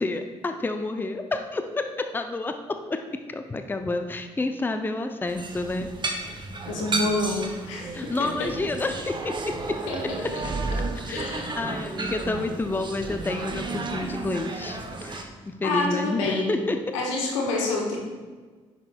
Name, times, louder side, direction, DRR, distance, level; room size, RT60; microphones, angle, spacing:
voice 1, 0.0-3.0 3.3-5.9 7.9-9.8 10.0-10.3 11.1-16.8, left 2 dB, 10° left, 6 dB, 0.5 m, -29 dB
sound 1, 5.3-15.2, right 3 dB, 30° right, 0.8 m, -32 dB
voice 2, 6.7-8.5 9.9-10.0 11.1-11.5 15.6-16.5 16.9-18.0, left 2 dB, 80° left, 0 dB, 1.0 m, -27 dB
10.0 x 4.4 x 2.3 m, 1.4 s
figure-of-eight pair, 45°, 16 cm